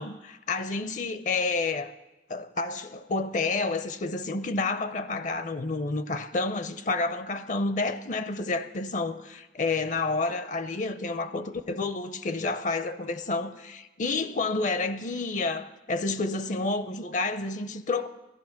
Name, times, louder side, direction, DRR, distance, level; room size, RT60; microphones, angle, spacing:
voice 1, 0.0-1.9 2.3-18.1, left 3 dB, 45° left, 0.6 m, -29 dB
15.0 x 11.0 x 5.9 m
head